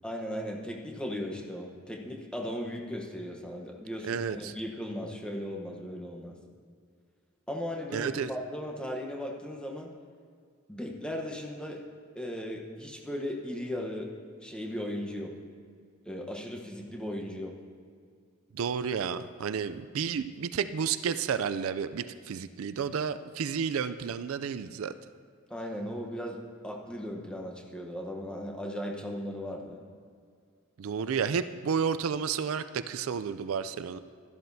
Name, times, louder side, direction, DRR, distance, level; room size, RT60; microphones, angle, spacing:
voice 1, 0.0-6.3 7.5-9.9 10.7-11.8 12.1-14.1 14.4-15.3 16.1-17.5 25.5-29.8, equal, 5° left, 0 dB, 0.9 m, -37 dB
voice 2, 4.0-4.5 7.9-8.3 18.5-24.9 30.8-34.0, right 6 dB, 85° right, 12 dB, 0.4 m, -31 dB
12.5 x 12.0 x 2.7 m, 2.2 s
head